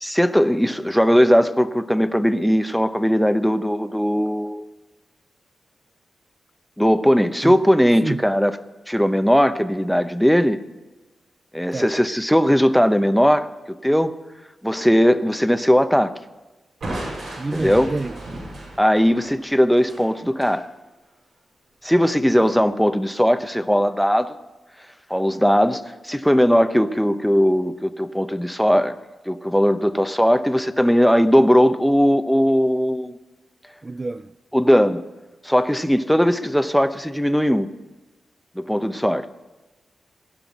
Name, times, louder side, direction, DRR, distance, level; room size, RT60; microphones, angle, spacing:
voice 1, 0.0-4.7 6.8-8.6 8.9-10.6 11.5-14.1 14.6-16.1 17.5-17.9 18.8-20.7 21.8-24.3 25.1-29.0 29.3-33.2 34.5-35.0 35.4-37.7 38.6-39.3, equal, ahead, 0.8 m, -18 dB
Crushing, 16.8-20.6, right 1 dB, 75° right, 5.8 m, -35 dB
voice 2, 17.4-18.2 22.3-22.5 33.8-34.3, right 3 dB, 30° right, 0.4 m, -28 dB
17.0 x 5.8 x 9.3 m
cardioid pair, 70°, 0 cm